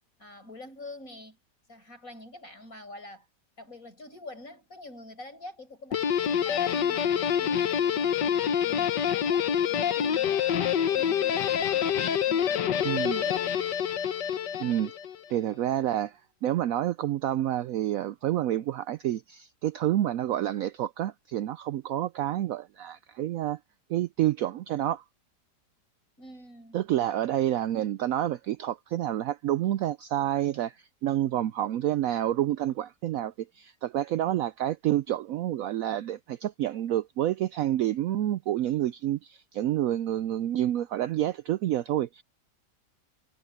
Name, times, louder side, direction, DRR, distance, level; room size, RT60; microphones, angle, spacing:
voice 1, 0.2-1.4 1.7-3.3 3.6-12.0 12.3-13.6 26.2-26.9, left 2 dB, 50° left, 7.8 m, -46 dB
Guitar, 5.9-15.2, left 8 dB, 85° left, 1.7 m, -26 dB
voice 2, 12.8-13.2 14.6-14.9 15.3-23.6 23.9-25.0 26.7-30.8 31.0-42.2, right 12 dB, 70° right, 0.8 m, -28 dB
omnidirectional pair, 1.8 m